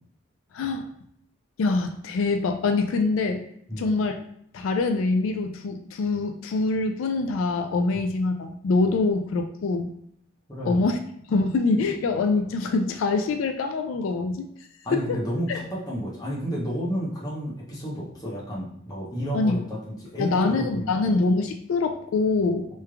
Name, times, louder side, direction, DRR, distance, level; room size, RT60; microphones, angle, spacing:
voice 1, 0.5-0.9 1.6-3.4 3.8-4.2 4.5-9.9 10.6-11.0 11.3-14.5 14.9-15.2 15.5-15.6 19.3-19.6 20.2-22.7, left 3 dB, 85° left, 6 dB, 0.3 m, -24 dB
voice 2, 10.5-10.9 14.8-21.1, equal, 20° left, -6 dB, 1.0 m, -31 dB
3.3 x 3.1 x 2.3 m, 0.70 s
head